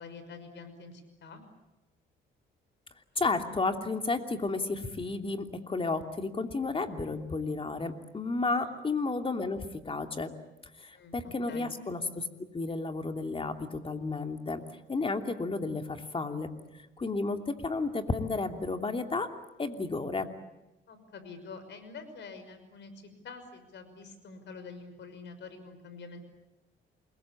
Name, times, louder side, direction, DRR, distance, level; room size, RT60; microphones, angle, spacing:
voice 1, 0.0-1.4 8.6-8.7 10.9-11.2 11.5-11.7 20.9-26.2, left 4 dB, 65° left, 10 dB, 5.9 m, -46 dB
voice 2, 3.2-10.3 10.8-12.2 12.5-14.6 14.9-16.5 17.0-19.3 19.6-20.3, left 3 dB, 25° left, 6 dB, 2.9 m, -32 dB
28.5 x 21.5 x 8.7 m, 1.0 s
cardioid pair, 90°, 20 cm